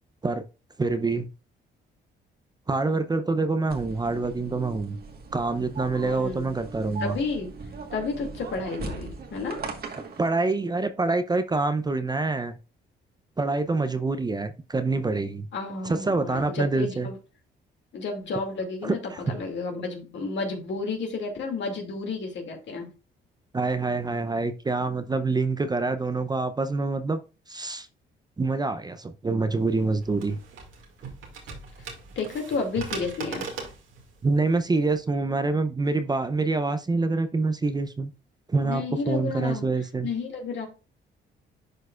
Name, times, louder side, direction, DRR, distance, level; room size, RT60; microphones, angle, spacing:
voice 1, 0.8-1.3 2.7-5.0 5.3-7.2 10.2-12.6 13.4-15.5 15.8-17.1 18.8-19.2 23.5-27.2 27.5-27.9 28.4-30.4 34.2-38.1 38.5-40.1, right 3 dB, 20° right, 10 dB, 0.6 m, -26 dB
sound 1, 3.7-10.3, right 3 dB, 50° right, 1.4 m, -39 dB
voice 2, 6.0-6.6 7.0-7.5 7.9-9.6 15.5-17.2 17.9-22.9 32.2-33.5 38.6-39.7 40.0-40.7, left 4 dB, 65° left, 2 dB, 2.3 m, -31 dB
sound 2, 29.6-35.0, right 4 dB, 80° right, 2.1 m, -40 dB
11.0 x 4.5 x 2.4 m, 0.32 s
cardioid pair, 90°, 20 cm